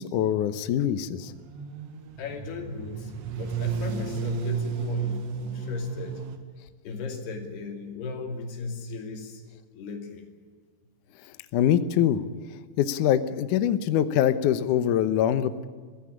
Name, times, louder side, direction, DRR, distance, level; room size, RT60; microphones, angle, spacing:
voice 1, 0.0-1.3 11.5-12.2 12.8-15.6, left 10 dB, 85° left, 12 dB, 1.8 m, -24 dB
sound 1, 1.2-6.4, right 7 dB, 80° right, 3.9 m, -33 dB
voice 2, 2.2-6.2 6.8-9.4 9.7-10.3, left 4 dB, 65° left, 4 dB, 4.6 m, -36 dB
23.0 x 15.5 x 9.9 m, 1.5 s
omnidirectional pair, 5.0 m